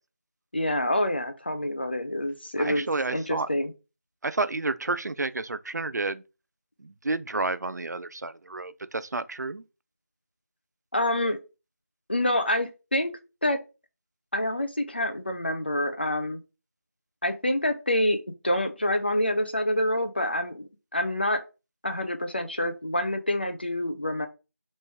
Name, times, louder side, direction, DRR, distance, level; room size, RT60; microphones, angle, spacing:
voice 1, 0.5-3.7 10.9-11.4 12.1-13.1 13.4-13.6 14.3-16.4 17.2-21.4 21.8-24.3, left 1 dB, 35° left, 0.4 m, -27 dB
voice 2, 2.6-3.5 4.2-6.2 6.8-9.6, right 3 dB, 80° right, 0.4 m, -30 dB
3.1 x 2.6 x 3.3 m
figure-of-eight pair, 175°, 9 cm